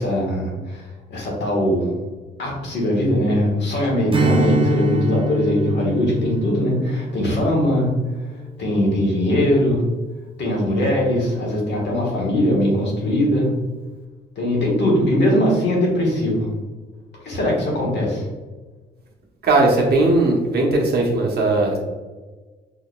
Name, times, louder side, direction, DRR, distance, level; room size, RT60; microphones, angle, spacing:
voice 1, 0.0-1.9 2.4-7.9 8.6-9.8 10.4-13.5 14.3-16.5 17.2-18.2, left 1 dB, 60° left, -2 dB, 1.4 m, -20 dB
Strum, 4.1-8.9, right 1 dB, 25° right, 0.5 m, -25 dB
voice 2, 19.4-21.8, right 2 dB, 55° right, -1 dB, 1.0 m, -18 dB
4.6 x 2.8 x 2.3 m, 1.3 s
cardioid pair, 90°, 20 cm